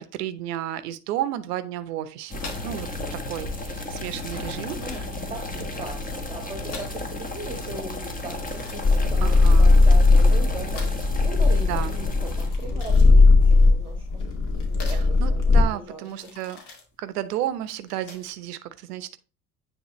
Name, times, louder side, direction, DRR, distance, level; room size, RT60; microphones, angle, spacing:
voice 1, 0.0-2.9 3.1-5.0 9.2-9.7 11.6-12.0 14.9-16.6 17.0-19.2, right 12 dB, 75° right, 0.8 m, -32 dB
sound 1, 2.3-12.5, left 1 dB, 15° left, 1.5 m, -33 dB
sound 2, 2.4-18.5, left 3 dB, 55° left, 2.3 m, -46 dB
voice 2, 4.8-14.2 14.7-16.3, right 2 dB, 10° right, 1.5 m, -39 dB
sound 3, 8.8-15.6, left 3 dB, 40° left, 2.1 m, -17 dB
9.4 x 3.7 x 3.0 m
hypercardioid pair, 65°, 47 cm